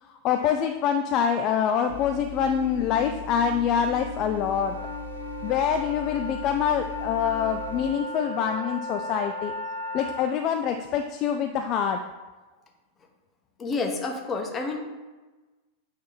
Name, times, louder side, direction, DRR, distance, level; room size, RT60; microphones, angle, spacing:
voice 1, 0.0-4.8 5.4-9.5 9.9-12.0, left 8 dB, 35° left, 6 dB, 0.4 m, -25 dB
sound 1, 1.9-7.9, left 5 dB, 70° left, 0.7 m, -38 dB
sound 2, 4.6-10.2, equal, 80° right, 0.8 m, -36 dB
voice 2, 13.6-14.8, left 3 dB, 20° left, 2 dB, 1.0 m, -29 dB
8.1 x 3.1 x 3.9 m, 1.2 s
figure-of-eight pair, 90°, 0 cm